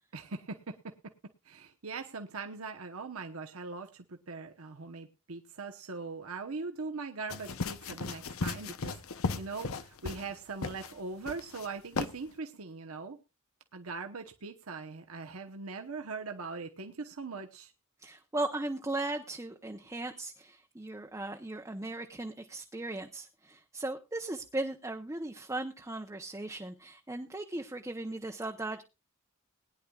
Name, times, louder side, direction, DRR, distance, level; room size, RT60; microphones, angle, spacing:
voice 1, 0.1-1.1 1.4-13.2 13.7-17.7, right 4 dB, 85° right, 4 dB, 1.0 m, -41 dB
sound 1, 7.3-10.3 10.6-10.9 11.3-11.7 12.0-12.1, left 4 dB, 75° left, 0.8 m, -36 dB
voice 2, 18.0-28.8, right 2 dB, 15° right, 3 dB, 0.7 m, -37 dB
20.5 x 10.0 x 2.4 m, 0.27 s
head